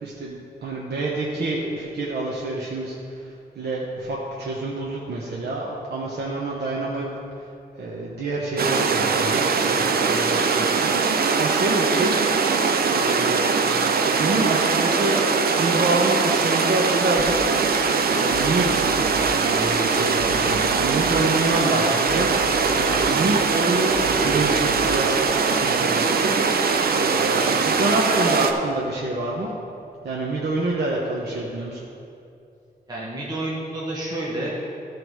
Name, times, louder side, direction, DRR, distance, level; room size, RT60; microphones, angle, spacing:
voice 1, 0.0-7.1 7.3-12.1 12.5-13.6 14.1-15.2 15.5-17.3 18.1-18.8 19.4-29.5 30.0-31.8, right 2 dB, 80° right, -4 dB, 1.0 m, -27 dB
sound 1, 8.6-28.5, right 5 dB, 65° right, 0.6 m, -21 dB
sound 2, 17.2-29.7, left 1 dB, 35° left, 1.6 m, -39 dB
voice 2, 32.9-34.5, right 1 dB, 25° right, -6 dB, 1.3 m, -29 dB
14.0 x 4.8 x 4.8 m, 2.6 s
wide cardioid pair, 155°, 17 cm